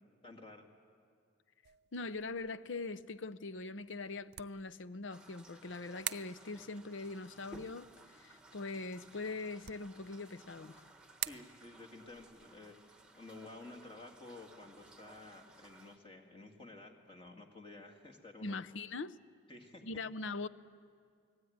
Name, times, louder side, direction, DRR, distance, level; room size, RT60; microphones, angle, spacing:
voice 1, 0.2-0.7 11.2-18.6 19.5-19.8, left 2 dB, 30° left, 2.2 m, -52 dB
sound 1, 1.6-15.8, right 13 dB, 55° right, 0.6 m, -50 dB
voice 2, 1.9-10.8 18.4-19.1 19.8-20.5, left 3 dB, 80° left, 0.7 m, -42 dB
sound 2, 5.1-16.0, right 1 dB, 5° right, 1.3 m, -59 dB
28.5 x 19.0 x 9.5 m
head